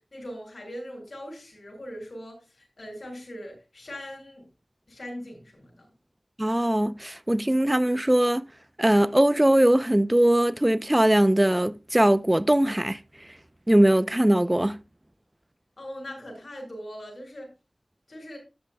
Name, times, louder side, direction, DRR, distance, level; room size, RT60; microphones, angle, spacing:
voice 1, 0.0-4.5 4.9-5.9 15.8-17.5 18.1-18.4, equal, 65° left, 7.5 m, -40 dB
voice 2, 6.4-8.4 8.8-13.0 13.7-14.8, right 1 dB, 20° right, 0.7 m, -21 dB
13.5 x 10.5 x 2.3 m
wide cardioid pair, 45°, 0 cm